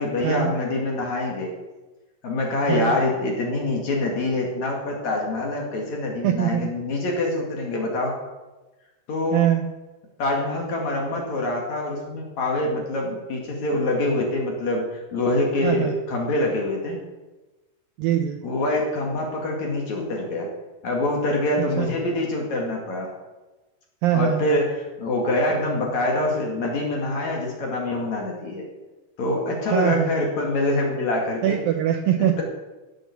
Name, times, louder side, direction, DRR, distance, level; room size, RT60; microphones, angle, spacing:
voice 1, 0.0-1.5 2.2-8.1 9.1-9.4 10.2-17.0 18.4-20.5 20.8-23.1 24.1-28.6 29.2-31.6 32.2-32.4, left 2 dB, 50° left, 0 dB, 3.0 m, -25 dB
voice 2, 6.2-6.7 9.3-9.7 15.6-16.0 18.0-18.4 21.8-21.9 24.0-24.5 29.7-30.2 31.4-32.4, right 10 dB, 80° right, 6 dB, 2.1 m, -22 dB
15.5 x 7.7 x 7.1 m, 1.1 s
omnidirectional pair, 4.8 m